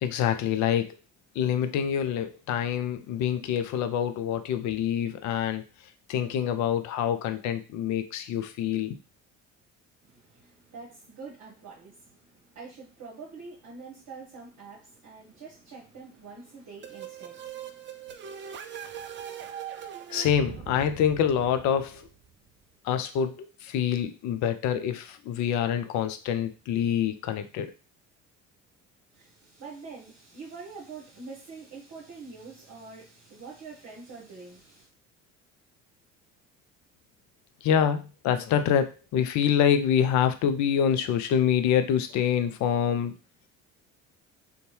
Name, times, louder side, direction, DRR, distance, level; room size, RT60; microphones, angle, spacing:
voice 1, 0.0-0.9 1.4-5.6 6.1-9.0 20.1-22.1 22.8-27.7 37.6-43.1, left 8 dB, 55° left, 0.5 m, -26 dB
voice 2, 10.0-18.4 29.1-34.9, right 4 dB, 50° right, 1.0 m, -45 dB
sound 1, 16.8-22.5, right 9 dB, 35° right, 0.4 m, -41 dB
2.6 x 2.2 x 3.1 m
hypercardioid pair, 60°, 36 cm